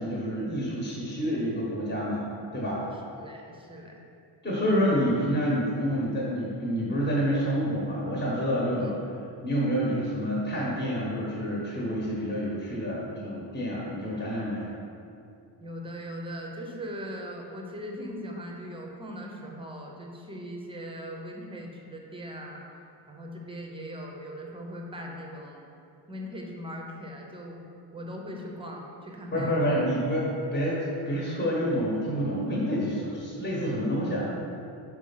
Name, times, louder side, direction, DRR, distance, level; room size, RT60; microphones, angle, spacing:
voice 1, 0.0-2.2 2.5-2.8 4.4-8.9 9.4-14.6 29.3-34.3, equal, 25° left, -5 dB, 1.2 m, -28 dB
voice 2, 3.1-4.0 8.7-8.9 15.6-25.7 26.1-27.6 27.9-29.9, equal, 10° right, 0 dB, 0.7 m, -40 dB
6.2 x 4.7 x 5.6 m, 2.5 s
wide cardioid pair, 175°, 44 cm